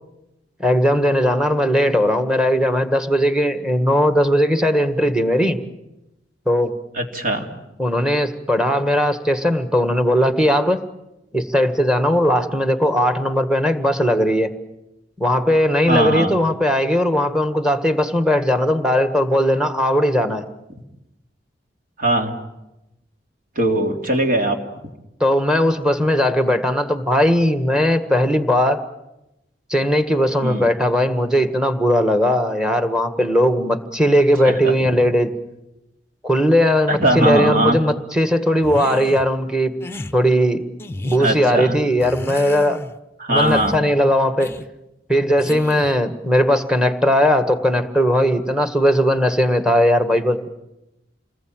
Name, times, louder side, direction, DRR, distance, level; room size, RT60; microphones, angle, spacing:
voice 1, 0.6-5.6 6.5-6.8 7.8-10.8 11.3-14.5 15.2-20.4 25.2-28.8 29.7-35.3 36.2-39.7 40.1-40.6 41.0-42.8 43.3-44.5 45.1-50.5, equal, 5° right, 9 dB, 1.8 m, -18 dB
voice 2, 6.9-7.4 15.9-16.3 22.0-22.3 23.5-24.6 30.4-30.7 34.4-34.9 36.9-37.8 41.2-41.7 43.2-43.8, right 1 dB, 50° right, 4 dB, 3.3 m, -20 dB
sound 1, 38.6-39.3 39.8-40.1 40.8-41.4 42.0-43.0 43.3-43.8 44.4-44.7 45.4-46.0, left 2 dB, 15° left, 0.9 m, -33 dB
28.0 x 20.5 x 9.1 m, 0.91 s
head